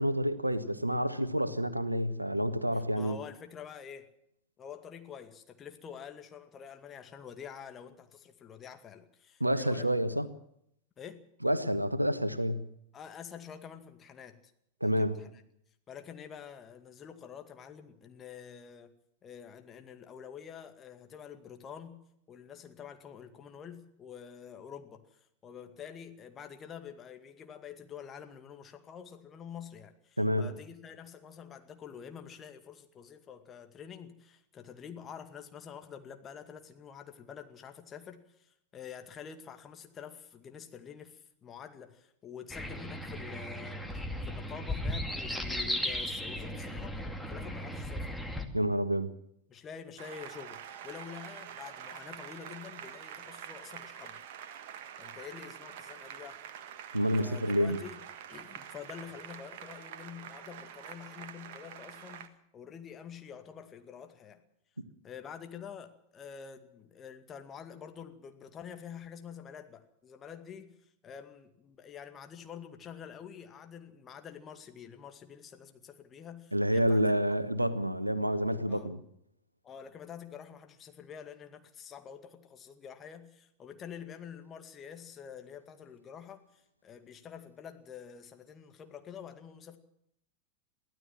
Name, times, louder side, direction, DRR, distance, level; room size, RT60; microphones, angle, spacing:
voice 1, 0.0-3.2 9.4-10.3 11.4-12.7 14.8-15.2 30.2-30.5 48.5-49.1 56.9-57.8 76.5-79.0, equal, 85° right, 1.3 m, -28 dB
voice 2, 2.7-4.1 4.6-9.9 11.0-11.2 12.9-14.5 14.8-15.3 15.9-18.9 19.2-22.0 22.3-48.1 49.5-54.2 55.0-56.4 57.2-58.0 58.3-64.4 65.0-77.2 78.7-78.9 79.6-89.8, left 7 dB, 25° left, 2.2 m, -47 dB
sound 1, 42.5-48.5, left 1 dB, ahead, 2.3 m, -36 dB
Applause, 50.0-62.3, right 9 dB, 50° right, 1.6 m, -46 dB
23.0 x 15.5 x 7.4 m
figure-of-eight pair, 90°, 0 cm